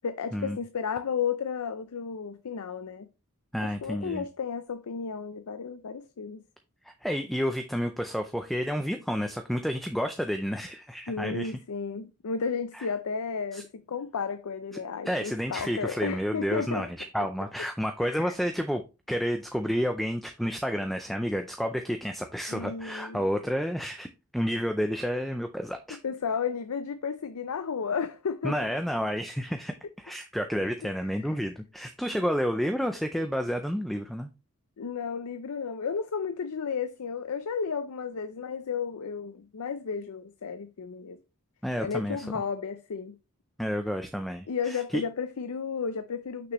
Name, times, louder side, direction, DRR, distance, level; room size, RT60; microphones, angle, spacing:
voice 1, 0.0-3.1 3.6-6.4 11.1-16.9 17.2-17.3 18.0-18.3 22.5-23.2 26.0-28.7 30.8-30.9 31.2-31.3 34.8-41.2 41.8-43.2 44.5-46.5, left 6 dB, 85° left, 0.5 m, -33 dB
voice 2, 3.5-4.2 6.9-11.6 12.7-12.9 13.5-13.6 15.0-18.8 19.1-24.1 24.3-26.0 28.4-34.3 41.6-42.3 43.6-45.0, equal, ahead, 0.4 m, -30 dB
6.2 x 6.0 x 3.0 m
head